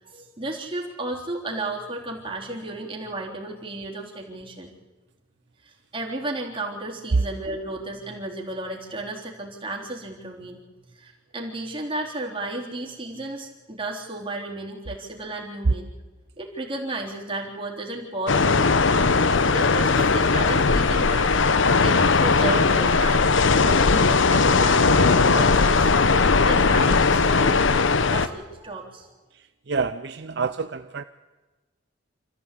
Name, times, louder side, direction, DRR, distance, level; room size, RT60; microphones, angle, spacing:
voice 1, 0.0-4.7 5.6-10.6 11.0-15.9 16.4-21.5 21.8-26.2 26.4-29.1, right 2 dB, 30° right, -1 dB, 3.6 m, -33 dB
sound 1, 18.3-28.3, left 4 dB, 85° left, 0.9 m, -19 dB
voice 2, 29.7-31.0, right 5 dB, 60° right, 10 dB, 0.6 m, -28 dB
26.5 x 14.5 x 8.4 m, 1.2 s
head